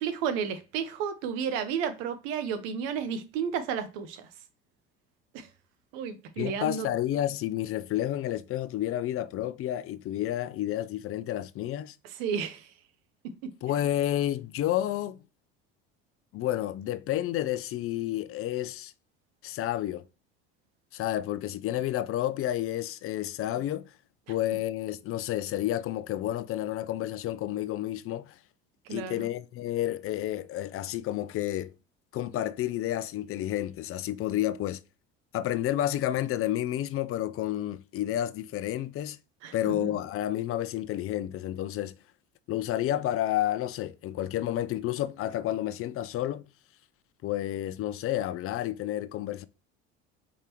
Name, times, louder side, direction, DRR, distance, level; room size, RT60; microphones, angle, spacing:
voice 1, 0.0-4.3 5.3-5.5 5.9-6.9 12.0-12.7 28.9-29.3 39.4-39.5 39.8-39.9, right 7 dB, 80° right, 0.9 m, -32 dB
voice 2, 6.4-11.9 13.6-15.2 16.3-18.9 19.4-20.0 20.9-23.9 24.3-28.4 28.9-31.7 32.1-34.8 35.3-39.2 39.5-41.9 42.5-46.5 47.2-49.5, left 13 dB, 45° left, 0.5 m, -30 dB
4.8 x 3.6 x 2.9 m
supercardioid pair, 85°, 30 cm